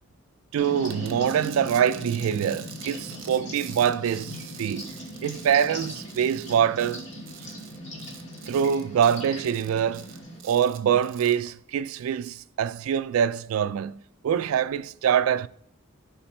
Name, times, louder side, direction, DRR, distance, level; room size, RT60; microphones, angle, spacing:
voice 1, 0.5-4.9 5.2-7.0 8.5-10.1 10.4-15.5, right 8 dB, 80° right, 0.3 m, -24 dB
sound 1, 0.6-10.4, equal, 35° left, 1.9 m, -39 dB
sound 2, 0.8-11.5, right 9 dB, 65° right, 0.8 m, -46 dB
7.1 x 5.0 x 3.2 m
head